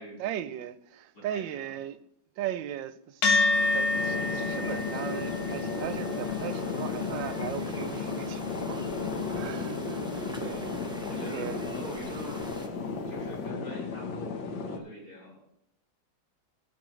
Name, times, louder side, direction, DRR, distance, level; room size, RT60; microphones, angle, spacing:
voice 1, 0.2-2.0 2.4-8.8 9.3-10.9 11.3-11.7, right 11 dB, 75° right, 1.3 m, -38 dB
voice 2, 1.1-1.7 10.2-10.5 11.1-12.5 13.1-15.4, equal, 45° left, 4.9 m, -44 dB
sound 1, 3.2-11.9, left 3 dB, 90° left, 2.7 m, -32 dB
sound 2, 3.5-12.7, right 1 dB, 5° right, 0.3 m, -44 dB
sound 3, 3.9-14.8, left 4 dB, 70° left, 1.8 m, -35 dB
16.5 x 7.5 x 3.2 m
omnidirectional pair, 2.2 m